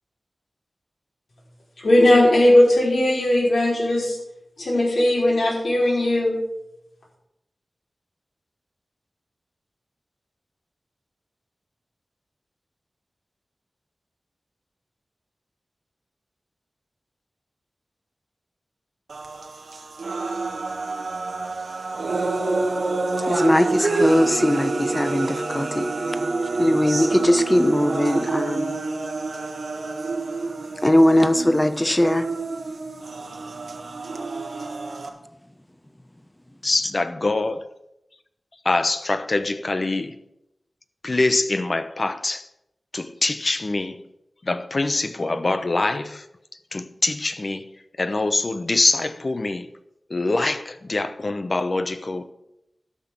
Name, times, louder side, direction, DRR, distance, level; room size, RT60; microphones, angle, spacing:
voice 1, 1.8-4.2 4.6-6.3, left 1 dB, 80° left, 5.2 m, -18 dB
sound 1, 19.1-35.1, right 3 dB, 85° right, 1.4 m, -27 dB
voice 2, 23.2-25.9 26.6-28.8 30.8-32.3, left 1 dB, 15° left, 1.0 m, -20 dB
voice 3, 36.6-37.6 38.6-40.2 41.0-42.5 42.9-44.0 44.4-46.2 46.7-47.7 48.0-49.7 50.1-52.3, left 2 dB, 45° left, 0.8 m, -24 dB
12.5 x 6.0 x 7.6 m
wide cardioid pair, 75°, 0 cm